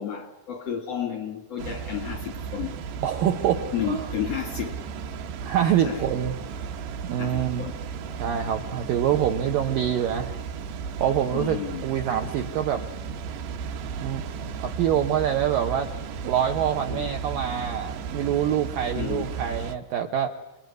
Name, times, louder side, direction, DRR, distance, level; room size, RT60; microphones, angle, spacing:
voice 1, 0.0-2.7 3.7-4.8 5.8-6.1 7.2-7.8 11.3-11.9 16.9-17.1 18.9-19.2, left 10 dB, 70° left, 1.5 m, -32 dB
Water, 1.6-19.8, right 6 dB, 65° right, 3.2 m, -35 dB
voice 2, 3.0-4.1 5.4-6.4 7.0-7.7 8.2-10.3 11.0-12.8 14.0-14.2 14.6-15.9 16.2-20.3, right 9 dB, 85° right, 1.9 m, -25 dB
29.0 x 21.5 x 9.6 m
omnidirectional pair, 5.7 m